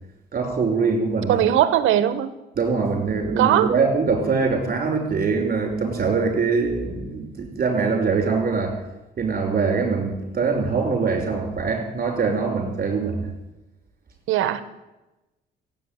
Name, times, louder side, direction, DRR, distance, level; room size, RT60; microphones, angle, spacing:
voice 1, 0.3-1.4 2.6-8.8 9.2-13.3, right 4 dB, 45° right, 3 dB, 5.4 m, -23 dB
voice 2, 1.3-2.3 3.4-3.7 14.3-14.6, right 11 dB, 90° right, 13 dB, 1.1 m, -19 dB
15.5 x 8.9 x 9.0 m, 1.0 s
cardioid pair, 90°, 20 cm